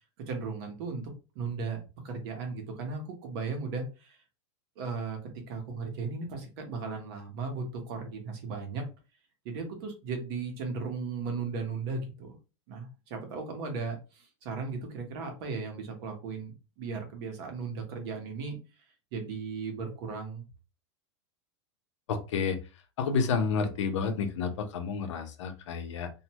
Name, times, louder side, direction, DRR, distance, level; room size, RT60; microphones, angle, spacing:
voice 1, 0.2-4.2 4.8-5.2 5.5-8.8 9.4-12.3 12.7-18.6 19.1-20.4, right 4 dB, 55° right, 4 dB, 1.0 m, -36 dB
voice 2, 22.1-22.6 23.0-26.1, left 5 dB, 85° left, 7 dB, 0.7 m, -30 dB
2.5 x 2.1 x 2.9 m, 0.30 s
supercardioid pair, 145°, 15 cm